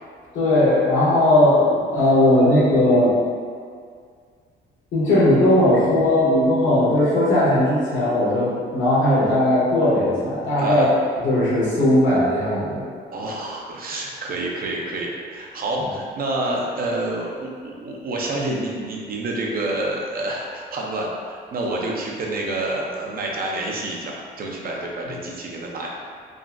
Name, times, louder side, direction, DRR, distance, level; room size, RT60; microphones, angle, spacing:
voice 1, 0.3-3.1 4.9-10.9 11.2-12.8, left 1 dB, 75° left, -8 dB, 1.3 m, -18 dB
voice 2, 10.6-10.9 13.1-25.9, right 2 dB, 50° right, -1 dB, 0.5 m, -28 dB
3.7 x 2.1 x 2.4 m, 2.1 s
cardioid pair, 90°, 20 cm